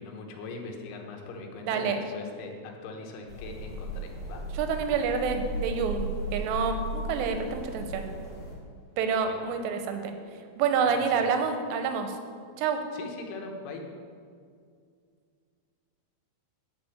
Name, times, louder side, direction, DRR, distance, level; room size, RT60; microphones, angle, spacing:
voice 1, 0.0-4.4 9.3-9.4 10.9-11.3 12.9-13.9, left 3 dB, 85° left, 2 dB, 3.5 m, -41 dB
voice 2, 1.6-2.0 4.6-8.1 9.0-10.2 10.6-12.2 12.6-12.8, right 6 dB, 80° right, 6 dB, 2.9 m, -28 dB
sound 1, 3.3-8.5, right 1 dB, 15° left, 1.7 m, -36 dB
10.5 x 5.1 x 7.9 m, 2.2 s
omnidirectional pair, 5.3 m